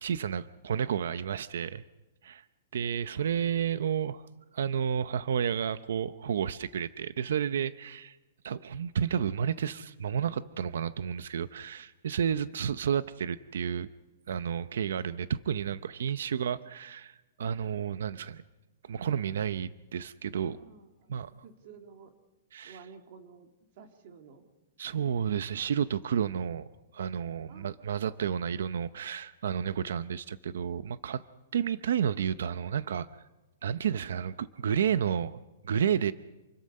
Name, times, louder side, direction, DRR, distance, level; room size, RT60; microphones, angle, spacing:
voice 1, 0.0-1.8 2.2-2.4 2.7-4.2 4.5-8.2 8.4-13.9 14.3-18.4 18.9-20.6 21.1-21.3 22.5-22.8 24.8-26.7 26.9-31.2 31.5-33.2 33.6-35.3 35.6-36.1, right 8 dB, 70° right, 14 dB, 0.7 m, -31 dB
voice 2, 20.3-22.1 22.6-23.5 23.7-24.4 24.8-25.3 27.5-27.7 28.1-28.2, right 6 dB, 35° right, 5 dB, 2.2 m, -53 dB
28.0 x 21.5 x 5.5 m, 1.1 s
hypercardioid pair, 180°, 0 cm